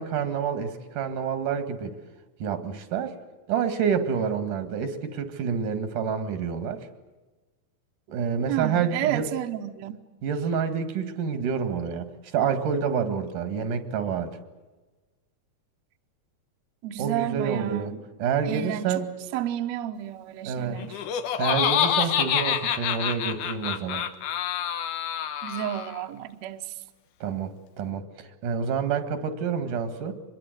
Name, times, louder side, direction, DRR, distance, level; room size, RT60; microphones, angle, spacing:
voice 1, 0.0-1.9 2.4-3.1 3.5-6.9 8.1-9.3 10.2-14.4 17.0-17.9 18.2-19.1 20.5-20.8 21.4-24.1 27.2-30.1, right 7 dB, 85° right, 10 dB, 3.4 m, -28 dB
voice 2, 8.5-10.0 16.8-18.0 18.5-19.0 19.3-20.9 22.0-22.1 25.4-26.8, right 12 dB, 65° right, 6 dB, 2.1 m, -31 dB
Laughter, 20.8-26.0, left 9 dB, 80° left, 2.7 m, -27 dB
25.0 x 22.0 x 8.0 m, 1.2 s
omnidirectional pair, 3.6 m